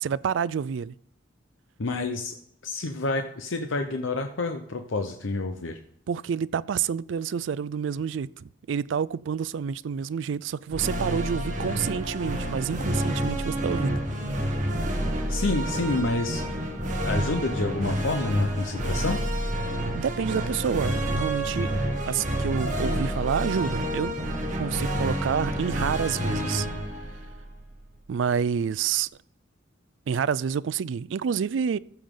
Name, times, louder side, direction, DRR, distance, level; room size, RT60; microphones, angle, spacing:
voice 1, 0.0-0.9 6.1-14.0 19.9-21.7 22.1-24.2 24.5-26.7 28.1-29.1 30.1-31.8, right 7 dB, 70° right, 0.3 m, -28 dB
voice 2, 1.8-2.4 2.6-5.8 15.3-16.4 17.0-19.2, left 3 dB, 80° left, 0.8 m, -28 dB
sound 1, 10.7-28.1, right 1 dB, 40° right, 2.0 m, -29 dB
14.5 x 7.1 x 3.8 m
head